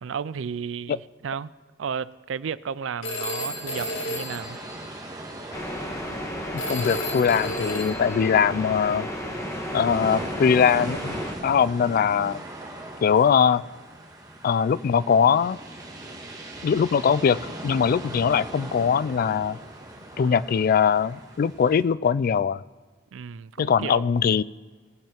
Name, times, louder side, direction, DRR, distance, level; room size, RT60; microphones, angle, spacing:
voice 1, 0.0-1.5 1.8-4.6 20.1-20.4 23.1-24.1, right 6 dB, 80° right, 0.4 m, -33 dB
Telephone, 3.0-5.4 6.6-8.3, left 1 dB, 90° left, 1.8 m, -33 dB
sound 1, 3.4-21.8, right 1 dB, 20° right, 1.5 m, -40 dB
sound 2, 5.5-11.3, equal, 15° left, 1.5 m, -33 dB
voice 2, 6.7-9.1 9.7-12.4 13.0-13.6 14.4-15.6 16.6-19.6 20.2-22.6 23.6-24.4, left 7 dB, 50° left, 0.3 m, -21 dB
19.0 x 7.6 x 4.4 m
head